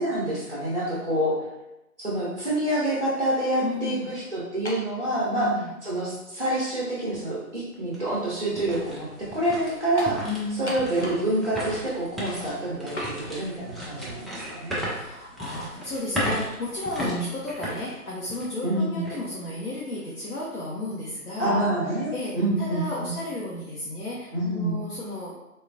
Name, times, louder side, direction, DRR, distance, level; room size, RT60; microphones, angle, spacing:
voice 1, 0.0-1.3 2.0-5.5 5.8-9.1 9.3-10.2 10.5-14.9 17.0-17.2 18.6-19.0 21.4-23.1 24.3-24.8, right 1 dB, 40° right, -8 dB, 0.7 m, -27 dB
voice 2, 3.6-4.1 5.3-5.7 10.2-10.7 14.8-21.6 22.1-25.3, left 2 dB, 75° left, -6 dB, 0.9 m, -33 dB
sound 1, 4.6-4.9 5.8-5.9 10.0-10.2 10.7-11.3 11.6-11.7 13.0-13.1, equal, 50° left, 0.7 m, -34 dB
sound 2, 7.1-7.2 7.7-18.6 19.0-19.2 19.8-20.1, equal, ahead, 0.4 m, -35 dB
3.6 x 2.3 x 2.6 m, 0.95 s
figure-of-eight pair, 180°, 44 cm